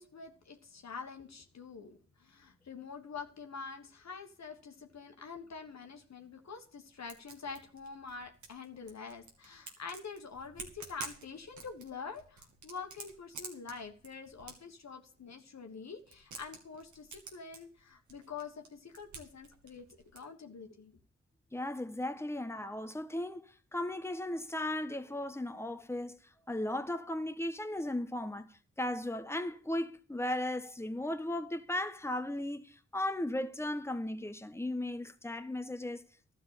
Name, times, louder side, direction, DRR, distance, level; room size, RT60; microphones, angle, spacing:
voice 1, 0.0-19.9 20.1-20.9, left 5 dB, 65° left, 1.5 m, -46 dB
sound 1, 6.1-6.2 6.5-15.4 15.9-20.2, right 4 dB, 85° right, 2.1 m, -51 dB
voice 2, 21.5-36.0, left 1 dB, 10° left, 1.1 m, -36 dB
12.5 x 5.8 x 8.3 m
cardioid pair, 40°, 29 cm